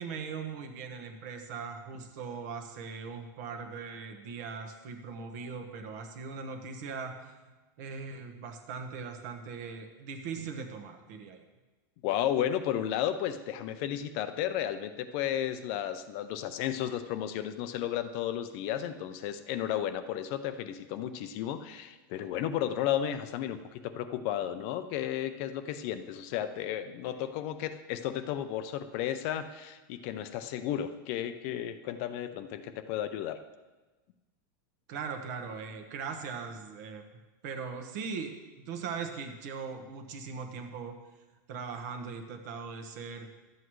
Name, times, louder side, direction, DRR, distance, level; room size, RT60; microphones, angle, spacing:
voice 1, 0.0-7.5 7.8-11.5 34.9-37.0 37.4-40.9 41.5-43.3, right 5 dB, 55° right, 5 dB, 1.2 m, -40 dB
voice 2, 12.0-33.4, left 10 dB, 40° left, 10 dB, 0.5 m, -33 dB
12.5 x 8.0 x 3.1 m, 1.2 s
supercardioid pair, 160°, 11 cm